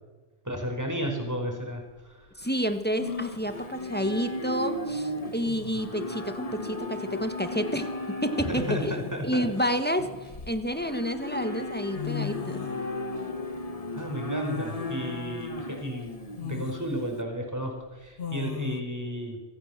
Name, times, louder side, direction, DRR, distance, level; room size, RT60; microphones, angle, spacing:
voice 1, 0.4-2.3 8.4-9.5 13.9-19.4, equal, 15° right, 2 dB, 5.1 m, -33 dB
sound 1, 1.4-1.5 3.0-3.5 5.0-5.1 5.5-5.9 7.3-7.5 8.6-9.3 10.0-11.0 11.7-11.8 11.9-12.8 14.4-15.0 15.5-15.6 16.4-16.9 18.2-18.8, left 8 dB, 60° left, 1.5 m, -37 dB
Livestock farm animals working animals, 2.4-17.2, left 1 dB, 35° left, 1.6 m, -36 dB
voice 2, 2.4-8.9 9.2-10.1 10.5-12.6, equal, 10° left, 8 dB, 1.5 m, -29 dB
26.5 x 15.5 x 7.5 m, 1.3 s
omnidirectional pair, 1.1 m